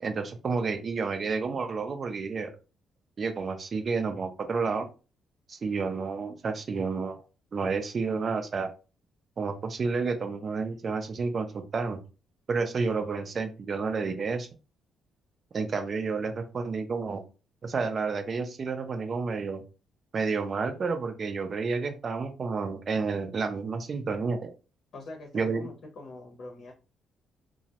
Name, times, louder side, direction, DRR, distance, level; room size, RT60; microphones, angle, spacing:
voice 1, 0.0-2.5 3.2-4.9 5.5-7.2 7.5-8.7 9.4-12.0 12.5-14.5 15.5-17.2 17.6-19.6 20.1-24.5 25.3-25.7, right 4 dB, 45° right, 7 dB, 0.4 m, -30 dB
voice 2, 24.9-26.7, left 2 dB, 60° left, 0 dB, 0.7 m, -44 dB
2.2 x 2.0 x 2.8 m, 0.33 s
cardioid pair, 90°, 0 cm